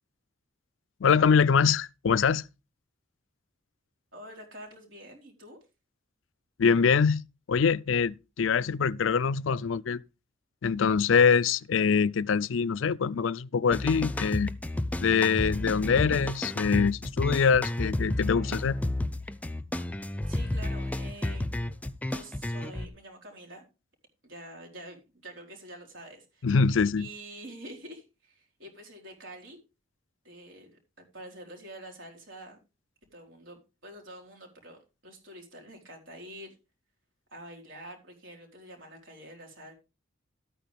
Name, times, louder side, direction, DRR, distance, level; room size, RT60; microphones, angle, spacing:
voice 1, 1.0-2.4 6.6-7.2 7.5-10.0 10.6-14.5 15.0-18.8 26.4-27.1, left 6 dB, 80° left, 0.4 m, -24 dB
voice 2, 4.1-5.6 20.3-21.5 22.1-23.6 24.2-26.5 27.0-29.6 30.2-32.6 33.1-36.6 37.3-39.7, right 1 dB, 70° right, 4.2 m, -47 dB
sound 1, 13.7-22.9, left 1 dB, 10° left, 0.6 m, -31 dB
13.0 x 9.2 x 3.4 m
head